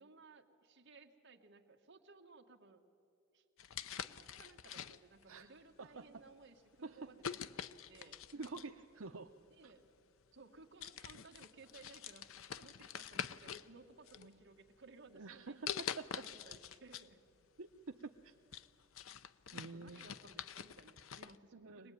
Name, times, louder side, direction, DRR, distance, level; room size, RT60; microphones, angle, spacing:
voice 1, 0.0-2.8 3.3-3.4 3.9-8.2 9.6-9.9 10.3-12.3 12.6-15.7 16.1-17.2 19.5-21.9, right 3 dB, 60° right, 3 dB, 1.8 m, -60 dB
sound 1, 3.6-5.2 6.0-6.2 7.2-8.8 9.9-10.0 10.4-10.6 10.8-13.7 14.1-14.8 15.7-17.1 17.4-17.5 18.0-21.4, left 8 dB, 80° left, 0.7 m, -46 dB
voice 2, 5.8-6.2 6.8-7.1 8.3-9.3 9.6-9.7 14.2-14.3 15.1-15.7 16.0-16.3 17.6-18.3 19.5-20.1 21.5-21.9, right 3 dB, 85° right, 4 dB, 0.8 m, -48 dB
24.5 x 19.5 x 9.4 m, 2.3 s
head